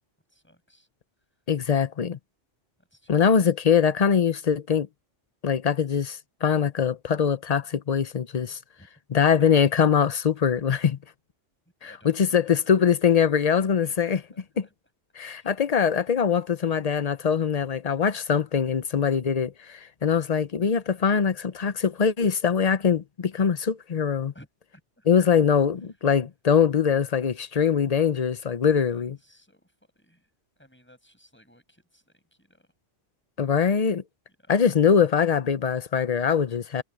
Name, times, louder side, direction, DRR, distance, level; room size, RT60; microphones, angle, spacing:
voice 1, 0.3-0.9 2.9-3.4 8.8-8.9 9.2-9.5 11.8-13.0 13.4-14.7 15.3-15.5 24.3-24.5 24.7-25.3 28.9-32.7 34.4-34.5, equal, 10° left, 7.6 m, -57 dB
voice 2, 1.5-2.2 3.1-4.9 5.4-8.6 9.1-11.0 12.0-14.2 15.2-24.3 25.1-29.2 33.4-34.0 34.5-36.8, left 7 dB, 40° left, 0.7 m, -22 dB
omnidirectional pair, 1.2 m